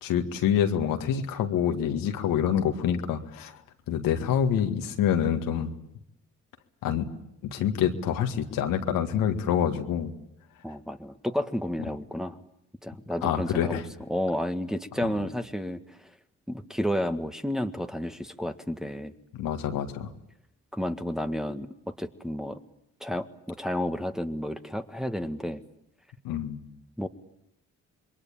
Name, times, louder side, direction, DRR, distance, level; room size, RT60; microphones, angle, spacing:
voice 1, 0.0-3.5 3.9-5.7 6.8-7.1 7.5-10.1 13.2-13.8 15.0-15.1 19.3-20.1 26.2-26.7, left 9 dB, 75° left, 6 dB, 2.0 m, -26 dB
voice 2, 10.6-12.4 12.8-13.8 14.1-16.1 16.5-19.1 20.7-22.6 23.0-25.6 27.0-27.1, equal, ahead, 7 dB, 1.8 m, -31 dB
27.0 x 22.0 x 8.9 m, 0.79 s
hypercardioid pair, 50°, 34 cm